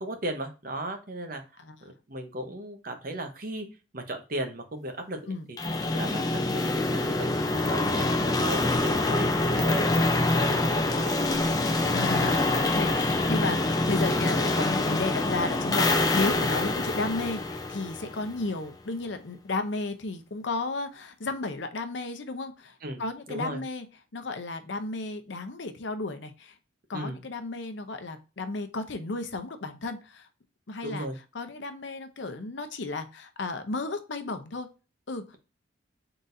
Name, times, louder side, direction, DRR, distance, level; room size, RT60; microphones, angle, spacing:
voice 1, 0.0-1.4 1.8-3.7 3.9-5.6 5.8-7.3 7.7-9.3 9.6-11.2 12.9-13.0 16.4-16.5 22.8-23.0 23.3-23.6 26.9-27.2 30.8-31.2, right 1 dB, 45° right, 5 dB, 0.9 m, -36 dB
sound 1, 5.6-18.4, left 2 dB, 20° left, 0.5 m, -25 dB
voice 2, 11.9-13.6 13.9-23.9 24.1-26.5 26.9-30.3 30.7-31.1 31.3-34.7 35.1-35.4, left 3 dB, 70° left, 9 dB, 0.7 m, -33 dB
4.0 x 3.9 x 2.6 m, 0.31 s
head